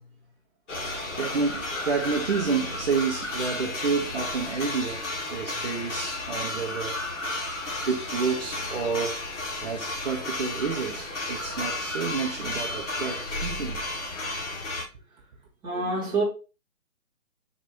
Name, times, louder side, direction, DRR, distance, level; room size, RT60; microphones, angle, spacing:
sound 1, 0.7-14.8, left 2 dB, 60° left, 1.3 m, -33 dB
voice 1, 0.8-7.0 7.9-9.2 9.6-13.8 15.7-16.1, right 5 dB, 45° right, 0.7 m, -30 dB
voice 2, 15.6-16.2, right 3 dB, 10° right, 1.1 m, -26 dB
4.3 x 2.4 x 3.5 m
figure-of-eight pair, 145°, 42 cm